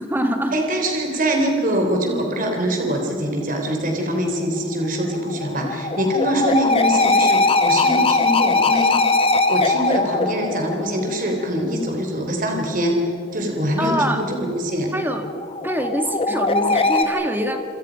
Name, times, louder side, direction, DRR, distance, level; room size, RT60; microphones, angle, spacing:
voice 1, 0.0-0.5 13.8-14.2 14.9-15.3 15.6-17.6, equal, 10° right, 5 dB, 2.0 m, -24 dB
voice 2, 0.5-9.0 9.5-13.0 13.3-14.9, right 1 dB, 40° right, 2 dB, 3.6 m, -23 dB
sound 1, 4.9-11.5 14.9-17.0, left 3 dB, 25° left, 1.6 m, -20 dB
28.0 x 26.5 x 5.2 m, 2.7 s
head